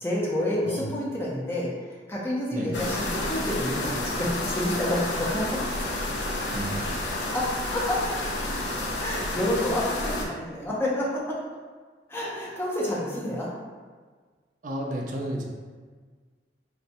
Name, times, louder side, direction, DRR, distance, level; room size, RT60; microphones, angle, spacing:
voice 1, 0.0-4.3 4.6-5.5 7.1-8.2 9.0-11.4 12.1-13.5, left 1 dB, 15° left, -5 dB, 0.6 m, -29 dB
sound 1, 2.7-10.3, left 2 dB, 70° left, 0.5 m, -30 dB
voice 2, 6.5-6.9 14.6-15.4, right 1 dB, 45° right, -1 dB, 0.5 m, -32 dB
4.1 x 2.2 x 2.6 m, 1.5 s
head